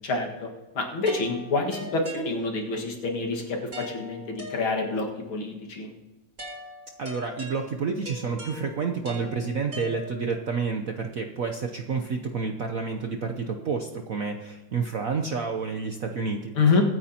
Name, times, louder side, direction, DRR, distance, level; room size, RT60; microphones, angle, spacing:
voice 1, 0.7-5.9 16.6-16.8, left 4 dB, 70° left, 1 dB, 2.6 m, -27 dB
sound 1, 1.1-2.8 3.7-5.1 6.4-10.5, equal, 30° right, 5.0 m, -41 dB
voice 2, 7.0-16.5, right 5 dB, 60° right, 4 dB, 0.9 m, -29 dB
24.0 x 9.4 x 2.9 m, 1.2 s
omnidirectional pair, 2.3 m